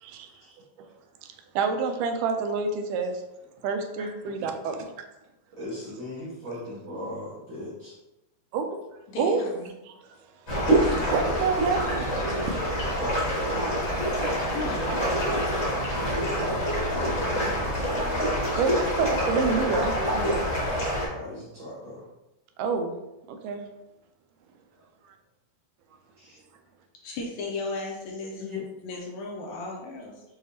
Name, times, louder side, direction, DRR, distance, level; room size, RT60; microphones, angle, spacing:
voice 1, 1.6-3.2 3.6-5.1 8.5-8.7 9.2-9.4 10.7-12.1 12.4-13.9 18.6-20.5 22.6-23.0 23.3-23.6, right 5 dB, 85° right, 6 dB, 2.1 m, -28 dB
voice 2, 5.6-7.9 13.0-13.8 16.4-17.5 17.9-18.6 21.0-22.0 26.2-26.4 28.3-28.6, left 1 dB, 60° right, -8 dB, 1.3 m, -38 dB
voice 3, 9.1-9.7 14.5-15.2 27.0-28.5 28.8-30.2, left 3 dB, 80° left, -1 dB, 1.8 m, -35 dB
sound 1, 10.5-21.1, equal, 40° left, 0.9 m, -26 dB
6.5 x 2.7 x 2.8 m, 0.96 s
omnidirectional pair, 3.7 m